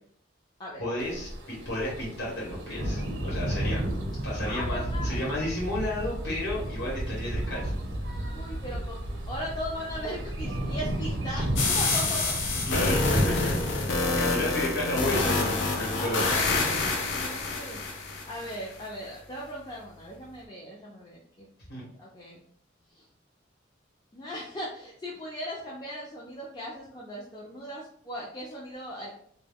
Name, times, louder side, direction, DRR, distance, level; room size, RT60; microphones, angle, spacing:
voice 1, 0.8-3.8 4.2-7.8 12.5-13.5 13.9-16.7 18.5-18.7 21.7-21.9, left 1 dB, 65° left, -6 dB, 1.1 m, -32 dB
sound 1, 1.0-13.8, right 1 dB, 75° right, 0.6 m, -33 dB
voice 2, 4.4-5.2 8.3-12.4 13.7-14.6 15.9-17.8 18.3-21.5 22.0-22.4 22.9-23.0 24.1-29.1, equal, 20° left, -5 dB, 0.4 m, -38 dB
sound 2, 11.6-18.5, left 3 dB, 85° left, 0.5 m, -27 dB
2.2 x 2.2 x 3.4 m, 0.63 s
head